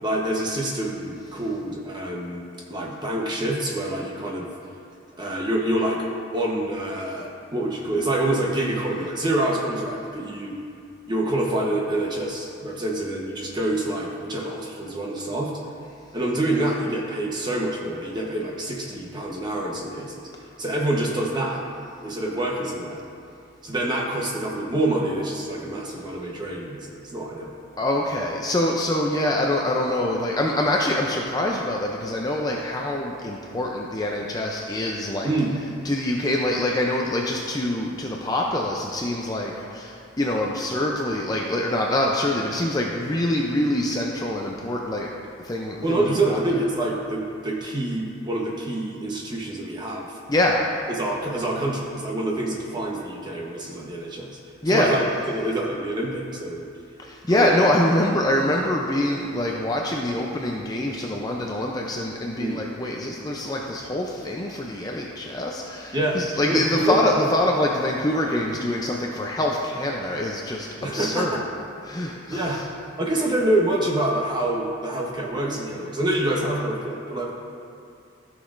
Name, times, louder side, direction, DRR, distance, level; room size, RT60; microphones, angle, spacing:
voice 1, 0.0-2.4 2.7-4.5 5.2-6.1 6.3-10.5 11.1-15.5 16.1-20.2 20.6-21.6 22.0-23.0 23.6-27.5 35.2-35.6 45.8-50.2 50.9-54.3 54.7-56.7 57.3-57.7 62.4-62.6 65.9-66.2 66.5-67.3 70.8-71.4 72.3-72.6 73.0-77.3, right 1 dB, 20° right, -2 dB, 1.0 m, -26 dB
voice 2, 27.8-35.3 35.8-45.1 45.4-46.4 50.3-50.8 54.6-55.0 57.0-71.4 71.8-72.6, left 1 dB, 20° left, -1 dB, 0.5 m, -25 dB
14.5 x 6.2 x 2.6 m, 2.4 s
head